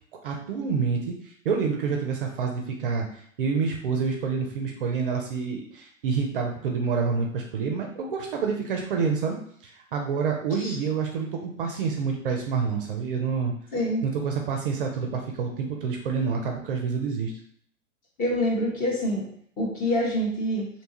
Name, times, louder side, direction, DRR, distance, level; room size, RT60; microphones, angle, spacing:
voice 1, 0.2-9.4 9.6-13.5 14.0-17.3, right 5 dB, 45° right, 1 dB, 0.4 m, -28 dB
voice 2, 13.7-14.1 18.2-19.3 19.6-20.7, equal, 20° left, -3 dB, 0.6 m, -26 dB
2.7 x 2.2 x 2.8 m, 0.64 s
figure-of-eight pair, 105°, 40 cm